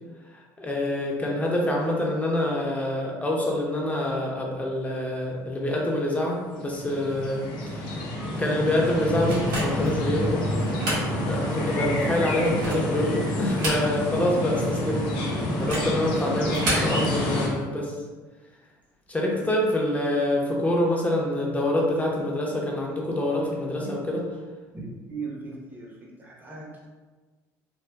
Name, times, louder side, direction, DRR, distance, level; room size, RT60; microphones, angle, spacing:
voice 1, 0.3-7.9 8.4-10.5 11.3-15.1 15.6-17.9 19.1-24.2, left 1 dB, 15° left, -2 dB, 0.8 m, -26 dB
sound 1, 6.6-17.5, left 1 dB, 65° left, 0.7 m, -28 dB
sound 2, 9.3-10.0 10.6-11.1 11.5-11.6 12.3-12.9 13.4-14.2 14.5-14.6 15.5-15.9 16.5-16.9, right 1 dB, 80° right, 1.5 m, -30 dB
voice 2, 11.7-12.1 23.8-24.0 24.7-26.9, right 3 dB, 20° right, -4 dB, 0.8 m, -38 dB
3.7 x 2.4 x 2.2 m, 1.3 s
hypercardioid pair, 75°, 9 cm